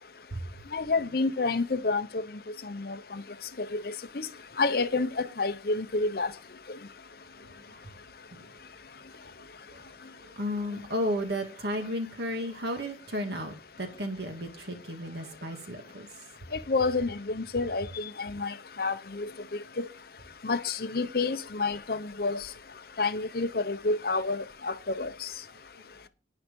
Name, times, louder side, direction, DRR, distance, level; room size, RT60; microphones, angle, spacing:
voice 1, 0.7-2.2 2.7-3.0 3.7-4.3 4.6-6.3 16.7-19.3 19.8-19.9 20.4-22.5 23.0-25.3, left 3 dB, 55° left, 0.8 m, -29 dB
voice 2, 7.4-7.8 8.3-8.5 9.7-16.1 25.7-25.8, equal, 65° right, 2.1 m, -34 dB
10.5 x 9.7 x 5.3 m
head